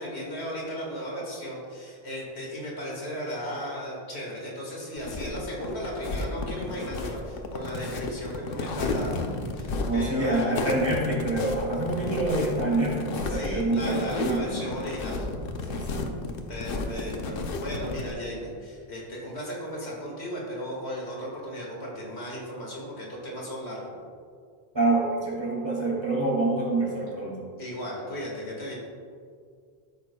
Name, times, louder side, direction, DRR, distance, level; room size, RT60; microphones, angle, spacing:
voice 1, 0.0-9.2 9.5-10.7 13.3-15.2 16.5-23.9 27.6-28.7, equal, 85° left, -3 dB, 2.1 m, -36 dB
sound 1, 5.0-18.1, left 3 dB, 60° left, 0.8 m, -32 dB
voice 2, 9.8-14.5 15.7-16.1 24.7-27.3, right 2 dB, 25° right, -5 dB, 2.2 m, -26 dB
13.0 x 6.3 x 2.3 m, 2.1 s
omnidirectional pair, 1.1 m